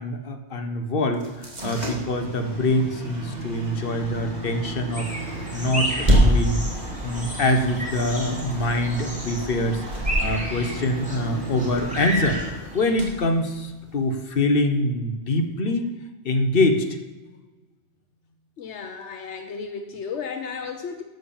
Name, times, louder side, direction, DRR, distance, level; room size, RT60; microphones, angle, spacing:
voice 1, 0.0-6.6 7.0-9.8 10.2-12.4 12.7-15.9 16.2-16.9, left 1 dB, 55° left, 6 dB, 1.4 m, -24 dB
sound 1, 1.1-14.1, equal, 40° right, 2.3 m, -28 dB
sound 2, 4.9-12.9, equal, 5° right, 2.6 m, -33 dB
voice 2, 18.6-21.0, left 5 dB, 80° left, 6 dB, 1.1 m, -34 dB
12.0 x 7.3 x 7.2 m, 1.2 s
omnidirectional pair, 1.1 m